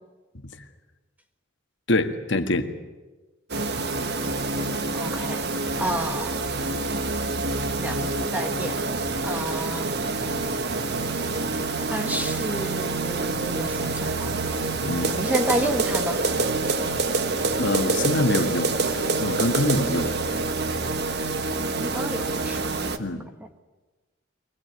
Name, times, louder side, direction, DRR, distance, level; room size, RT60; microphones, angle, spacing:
voice 1, 1.9-2.7 14.8-15.2 17.6-18.7 19.2-20.1 23.0-23.3, left 2 dB, 65° left, 6 dB, 1.8 m, -24 dB
sound 1, 3.5-23.0, right 3 dB, 55° right, 1.4 m, -26 dB
voice 2, 4.9-5.4 5.8-6.4 7.8-8.8 9.2-10.0 11.9-14.4 15.2-16.2 21.8-22.6, right 1 dB, 10° right, 6 dB, 1.5 m, -30 dB
23.0 x 19.0 x 9.5 m, 1.2 s
head